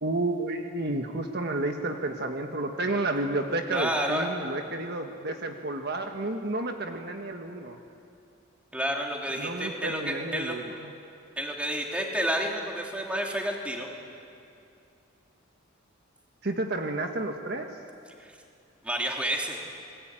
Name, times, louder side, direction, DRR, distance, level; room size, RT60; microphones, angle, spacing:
voice 1, 0.0-7.8 9.4-10.9 16.4-17.7, right 2 dB, 55° right, 4 dB, 1.5 m, -31 dB
voice 2, 3.7-4.3 8.7-10.5 11.4-13.9 18.8-19.6, equal, 5° right, 0 dB, 3.1 m, -30 dB
28.0 x 21.0 x 9.0 m, 2.5 s
head